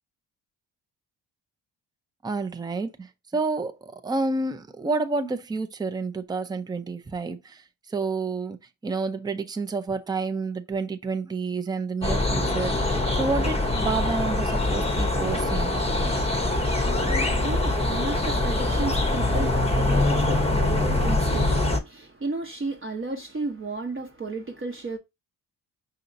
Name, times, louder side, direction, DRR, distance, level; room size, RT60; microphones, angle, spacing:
voice 1, 2.2-8.6 8.8-15.7, right 3 dB, 10° right, 0.5 m, -29 dB
sound 1, 12.0-21.8, left 2 dB, 15° left, 0.8 m, -24 dB
voice 2, 16.7-25.0, right 3 dB, 30° right, 0.9 m, -33 dB
5.4 x 2.8 x 2.6 m
supercardioid pair, 65°, 43 cm